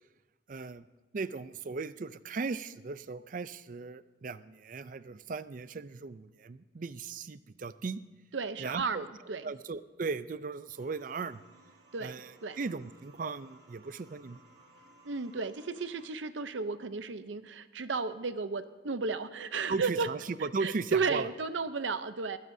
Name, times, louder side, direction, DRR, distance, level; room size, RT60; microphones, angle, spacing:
voice 1, 0.5-0.9 1.1-8.0 8.6-9.1 9.4-11.4 12.0-14.4 19.7-21.3, right 4 dB, 45° right, 15 dB, 0.4 m, -37 dB
voice 2, 8.3-9.5 11.9-12.6 15.0-20.1 20.6-22.4, right 4 dB, 90° right, 12 dB, 0.7 m, -34 dB
sound 1, 10.7-16.1, right 2 dB, 65° right, 1.8 m, -60 dB
21.0 x 16.0 x 2.7 m, 1.2 s
head